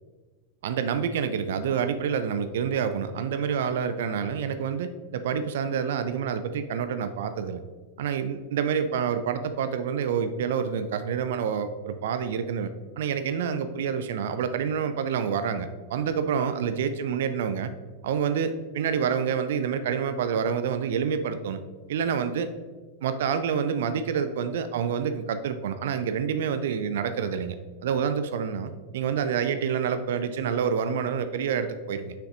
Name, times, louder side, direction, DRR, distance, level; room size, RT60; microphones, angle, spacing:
voice 1, 0.6-7.6 8.0-17.7 18.0-21.6 21.9-22.5 23.0-27.6 27.8-32.1, right 7 dB, 55° right, 11 dB, 0.3 m, -28 dB
6.6 x 5.8 x 2.6 m, 1.4 s
figure-of-eight pair, 90°, 0 cm